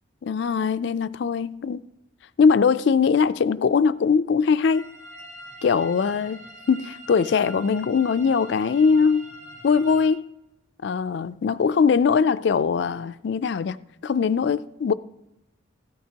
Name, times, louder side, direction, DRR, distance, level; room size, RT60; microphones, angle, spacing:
voice 1, 0.2-1.8 2.4-4.8 5.6-9.3 9.6-10.2 10.8-13.8 14.0-14.9, left 5 dB, 55° left, 0.3 m, -21 dB
sound 1, 4.6-10.1, equal, 55° right, 2.8 m, -44 dB
15.0 x 13.0 x 2.8 m
head